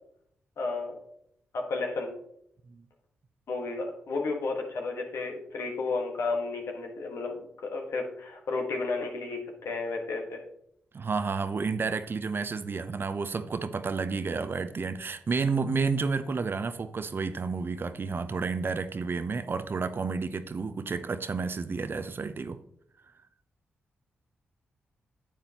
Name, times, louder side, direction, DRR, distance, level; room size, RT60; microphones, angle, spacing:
voice 1, 0.6-1.0 1.5-2.1 3.5-10.4, left 3 dB, 70° left, 1.5 m, -32 dB
voice 2, 10.9-22.6, right 4 dB, 50° right, 0.7 m, -31 dB
9.1 x 7.5 x 2.9 m
supercardioid pair, 40°, 5 cm